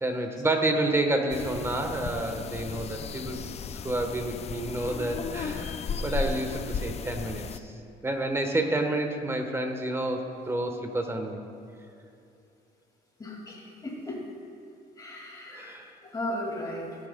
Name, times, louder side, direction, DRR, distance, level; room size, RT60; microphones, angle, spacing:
voice 1, 0.0-3.4 3.8-7.7 8.0-11.4 15.5-15.9, right 2 dB, 15° right, 4 dB, 1.2 m, -29 dB
sound 1, 1.3-7.6, left 5 dB, 40° left, 0.4 m, -35 dB
voice 2, 13.2-14.2 15.0-15.7 16.0-17.0, left 1 dB, 20° left, -2 dB, 2.3 m, -36 dB
17.5 x 10.5 x 2.3 m, 2.7 s
cardioid pair, 110°, 17 cm